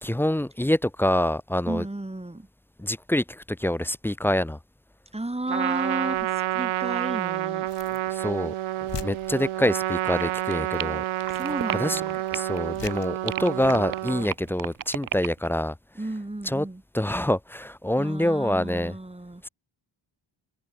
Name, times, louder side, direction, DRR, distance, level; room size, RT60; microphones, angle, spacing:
voice 1, 0.0-1.9 2.8-4.6 8.1-8.5 9.0-11.0 11.7-12.0 12.3-15.7 16.4-16.7 16.9-18.9 19.4-19.5, left 1 dB, 5° left, 0.5 m, -26 dB
voice 2, 1.7-2.5 5.1-7.7 11.3-12.2 16.0-16.8 18.0-19.4, right 2 dB, 10° right, 6.5 m, -33 dB
Trumpet, 5.5-14.3, right 15 dB, 90° right, 0.8 m, -29 dB
sound 1, 6.1-6.5 7.6-8.1 8.5-8.6 8.9-9.8 10.7-10.9 11.2-11.8 12.7-13.2 13.6-13.8, left 8 dB, 60° left, 2.4 m, -41 dB
sound 2, 10.2-12.6 12.8-15.5, right 9 dB, 45° right, 0.7 m, -33 dB
open air
wide cardioid pair, 110°, 48 cm